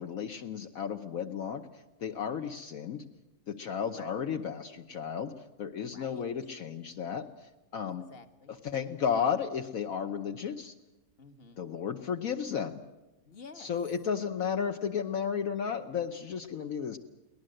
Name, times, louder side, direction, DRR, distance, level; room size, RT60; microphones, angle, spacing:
voice 1, 0.0-3.0 3.5-8.0 8.6-10.7 11.6-12.8 13.6-17.0, left 7 dB, 70° left, 5 dB, 1.4 m, -33 dB
voice 2, 5.9-6.3 7.8-8.6 11.2-11.7 13.2-13.7, left 4 dB, 40° left, 9 dB, 1.8 m, -52 dB
23.5 x 18.5 x 7.7 m, 1.1 s
omnidirectional pair, 1.5 m